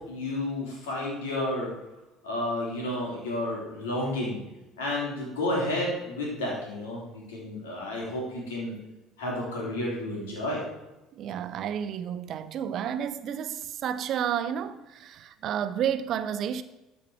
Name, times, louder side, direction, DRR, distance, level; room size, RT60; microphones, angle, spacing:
voice 1, 0.1-1.7 2.2-4.4 4.8-8.8 9.2-10.7, left 1 dB, 80° left, 3.4 m, -31 dB
voice 2, 11.1-16.6, right 9 dB, 55° right, 0.7 m, -31 dB
12.5 x 5.4 x 4.8 m
hypercardioid pair, 60°, 0 cm